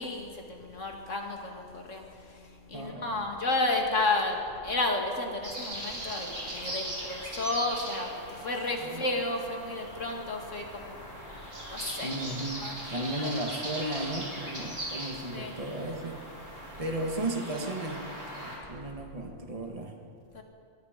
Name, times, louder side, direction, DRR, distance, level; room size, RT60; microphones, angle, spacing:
voice 1, 0.0-2.0 2.7-4.4 4.6-8.1 8.4-10.9 11.7-12.1 12.6-12.7 15.3-15.5 20.3-20.4, left 2 dB, 80° left, 2 dB, 2.8 m, -31 dB
voice 2, 2.7-3.2 8.8-9.1 12.0-16.2 16.8-20.0, right 1 dB, 30° right, 3 dB, 1.8 m, -35 dB
sound 1, 5.4-18.6, right 1 dB, 85° right, 5.7 m, -40 dB
24.0 x 23.0 x 5.2 m, 2.4 s
omnidirectional pair, 1.3 m